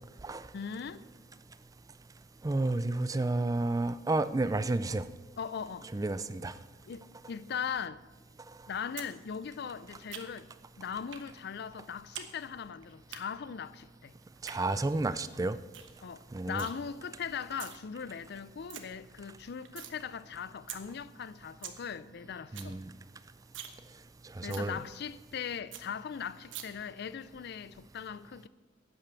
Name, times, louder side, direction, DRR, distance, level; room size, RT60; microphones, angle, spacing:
voice 1, 0.5-1.0 5.4-5.9 6.9-8.0 8.7-10.5 10.8-14.1 16.0-22.8 24.4-28.5, left 7 dB, 60° left, 0.4 m, -39 dB
voice 2, 2.4-5.1 5.9-6.5 14.4-15.6 16.3-16.7 22.5-22.9 24.3-24.8, right 2 dB, 20° right, 0.4 m, -31 dB
sound 1, 9.0-9.1 9.4-10.5 11.1-11.3 11.6-12.3 12.6-13.2 14.2-14.6 15.0-15.1 15.4-15.5 15.7-15.9 16.2-16.7 17.4-17.8 18.2-18.3 18.5-18.8 19.2-19.9 20.3-20.4 20.7-20.8 21.2-21.3 21.5-21.8 22.1-22.2 22.4-22.7 23.1-23.2 23.5-23.8 24.1-24.2 24.5-24.7 25.1-25.2 25.4-25.5 25.7-25.8 26.5-26.6, right 10 dB, 80° right, 1.1 m, -43 dB
11.0 x 8.9 x 6.8 m
head